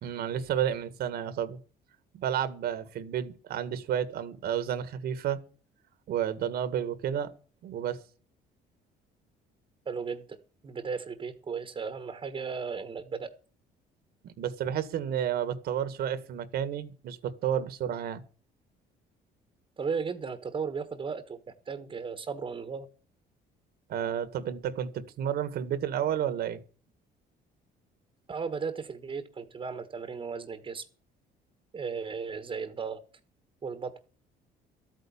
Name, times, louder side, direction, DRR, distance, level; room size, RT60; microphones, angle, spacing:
voice 1, 0.0-1.6 2.1-5.4 6.1-7.3 7.6-8.0 14.2-18.2 23.9-26.6, right 9 dB, 70° right, 13 dB, 1.7 m, -31 dB
voice 2, 9.8-10.4 10.6-13.3 19.8-21.4 21.7-22.9 28.3-30.9 31.7-33.0 33.6-33.9, right 5 dB, 30° right, 11 dB, 1.3 m, -35 dB
13.0 x 9.2 x 7.1 m, 0.40 s
cardioid pair, 110°, 17 cm